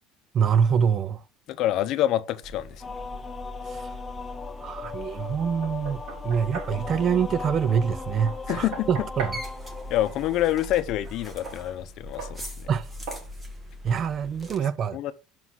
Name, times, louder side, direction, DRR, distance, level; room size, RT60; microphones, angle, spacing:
voice 1, 0.3-1.2 3.6-3.9 4.6-9.4 12.7-12.9 13.8-15.1, right 7 dB, 40° right, 0.4 m, -25 dB
voice 2, 1.5-2.8 8.5-8.9 9.9-12.7 14.9-15.1, left 13 dB, 55° left, 0.7 m, -27 dB
sound 1, 2.4-14.6, left 1 dB, 15° right, 1.4 m, -41 dB
sound 2, 2.8-10.4, left 4 dB, 20° left, 0.6 m, -38 dB
Knock, 5.6-6.8 8.3-9.4 11.4-11.6 12.2-12.4 13.1-13.3, right 5 dB, 70° right, 4.2 m, -37 dB
6.0 x 4.1 x 5.9 m
cardioid pair, 135°, 0 cm